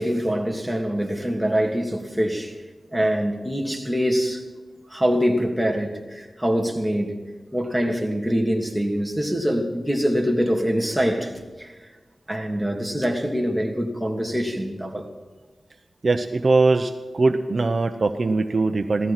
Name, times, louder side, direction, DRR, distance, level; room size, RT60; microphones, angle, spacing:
voice 1, 0.0-2.5 2.9-4.4 4.9-7.2 7.5-11.3 11.6-11.7 12.3-15.1, equal, 5° right, 2.9 m, -24 dB
voice 2, 16.0-19.1, right 3 dB, 55° right, 0.9 m, -21 dB
16.5 x 14.0 x 6.0 m
wide cardioid pair, 80°, 0 cm